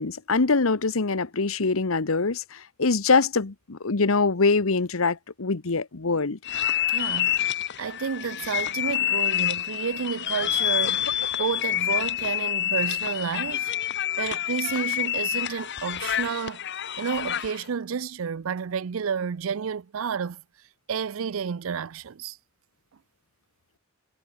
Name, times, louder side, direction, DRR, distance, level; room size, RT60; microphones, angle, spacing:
voice 1, 0.0-6.4, left 4 dB, 75° left, 1.1 m, -24 dB
sw.mikolajek, 6.4-17.6, left 11 dB, 55° left, 1.4 m, -27 dB
voice 2, 6.9-13.7 14.2-16.6 17.0-20.4 20.9-22.4, right 6 dB, 70° right, 0.5 m, -31 dB
head